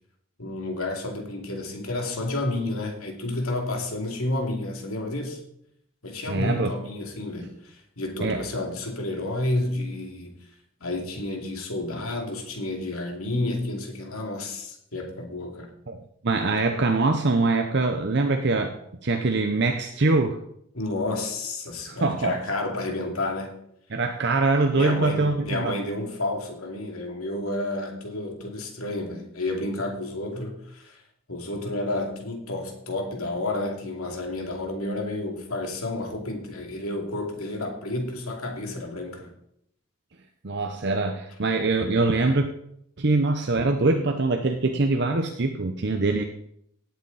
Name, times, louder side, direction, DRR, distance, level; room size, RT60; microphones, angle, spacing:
voice 1, 0.4-5.4 6.0-10.4 10.8-15.7 20.7-23.6 24.7-31.0 31.3-39.3, left 2 dB, 85° left, 2 dB, 2.7 m, -30 dB
voice 2, 6.3-6.7 8.2-8.4 15.9-20.4 21.9-22.4 23.9-25.8 40.4-42.5 43.0-46.2, right 3 dB, 50° right, 5 dB, 0.8 m, -23 dB
17.5 x 8.1 x 4.1 m, 0.73 s
head